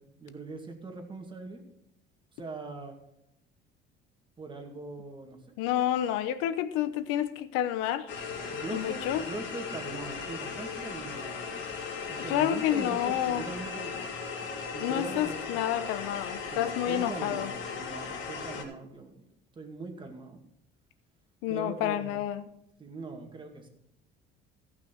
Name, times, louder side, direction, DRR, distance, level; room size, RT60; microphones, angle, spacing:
voice 1, 0.0-1.6 2.3-3.0 4.4-5.4 8.5-11.6 12.1-14.1 14.7-15.4 16.5-19.3 19.5-20.4 21.5-22.3 22.8-23.7, right 3 dB, 25° right, 4 dB, 2.2 m, -41 dB
voice 2, 5.6-8.1 8.7-9.2 12.3-13.4 14.8-17.5 21.4-22.5, left 11 dB, 85° left, 12 dB, 1.0 m, -29 dB
sound 1, 8.1-18.6, left 5 dB, 65° left, 3.0 m, -37 dB
14.5 x 6.1 x 6.1 m, 0.80 s
cardioid pair, 115°, 21 cm